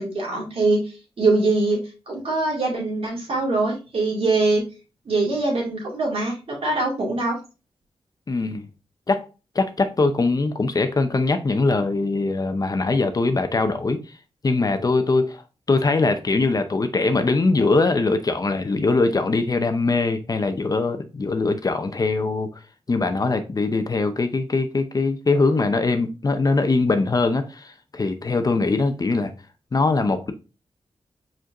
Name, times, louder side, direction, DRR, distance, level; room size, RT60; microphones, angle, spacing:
voice 1, 0.0-1.8 2.1-4.6 5.1-7.4, right 2 dB, 70° right, 2.3 m, -23 dB
voice 2, 8.3-8.7 9.1-9.2 9.5-14.0 14.4-15.4 15.7-22.5 22.9-29.3 29.7-30.3, left 3 dB, 40° left, 0.6 m, -22 dB
4.9 x 4.4 x 2.5 m
wide cardioid pair, 95°, 10 cm